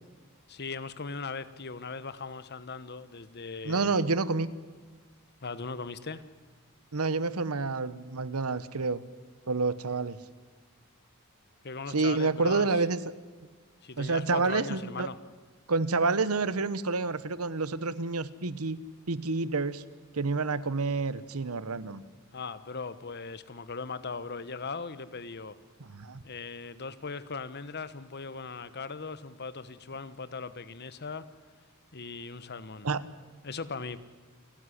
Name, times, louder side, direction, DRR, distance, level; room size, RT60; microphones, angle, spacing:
voice 1, 0.5-3.9 5.4-6.2 11.6-12.8 13.8-15.2 22.3-25.6 26.2-31.3 31.9-32.9 33.4-34.0, left 4 dB, 50° left, 1.1 m, -39 dB
voice 2, 3.6-4.5 6.9-9.0 9.5-10.2 11.9-13.0 14.0-15.1 15.7-18.8 19.1-19.8 20.1-22.0 25.8-26.2 32.8-33.0, right 3 dB, 85° right, 1.0 m, -28 dB
28.5 x 13.0 x 9.9 m
head